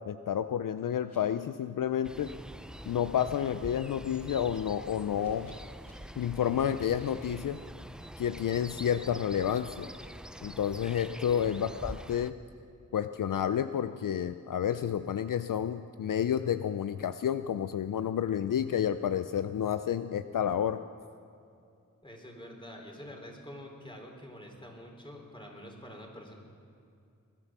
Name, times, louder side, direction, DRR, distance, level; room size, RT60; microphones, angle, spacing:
voice 1, 0.0-2.3 2.9-5.5 6.2-7.6 8.2-9.9 10.4-12.4 12.9-20.8, left 9 dB, 70° left, 11 dB, 0.5 m, -30 dB
sound 1, 1.1-1.2 3.9-4.6 5.2-5.9 6.5-7.3, left 1 dB, 50° left, 5.0 m, -61 dB
sound 2, 2.0-12.3, equal, ahead, 0.5 m, -45 dB
voice 2, 11.3-11.6 22.0-26.3, equal, 15° left, 1 dB, 3.5 m, -47 dB
21.5 x 10.5 x 6.0 m, 2.5 s
cardioid pair, 45°, 33 cm